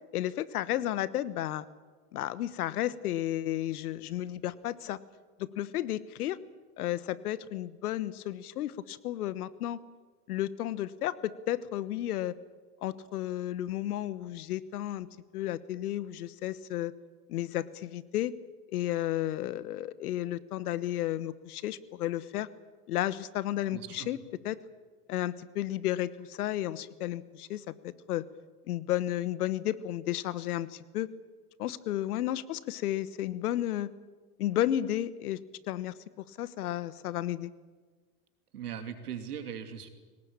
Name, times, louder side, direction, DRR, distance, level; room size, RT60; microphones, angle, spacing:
voice 1, 0.1-1.6 2.1-5.0 5.4-6.4 6.8-9.8 10.3-12.3 12.8-15.1 15.3-16.9 17.3-18.3 18.7-22.5 22.9-24.2 24.4-24.6 25.1-28.2 28.7-31.1 31.6-33.9 34.4-35.4 35.7-35.9 36.4-37.5, left 13 dB, 80° left, 16 dB, 1.3 m, -32 dB
voice 2, 23.7-24.1 38.5-39.9, right 8 dB, 90° right, 7 dB, 2.9 m, -39 dB
23.0 x 19.0 x 8.8 m, 1.4 s
hypercardioid pair, 110°, 45 cm